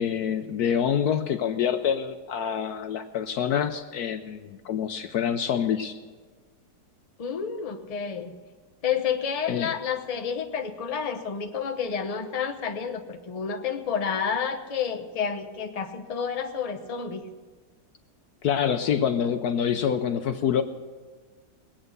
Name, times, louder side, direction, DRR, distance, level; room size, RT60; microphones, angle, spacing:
voice 1, 0.0-6.0 9.5-9.7 18.4-20.6, left 8 dB, 70° left, 9 dB, 1.0 m, -26 dB
voice 2, 7.2-8.3 8.8-17.2, left 7 dB, 30° left, 5 dB, 0.7 m, -30 dB
20.5 x 8.8 x 6.7 m, 1.4 s
omnidirectional pair, 1.9 m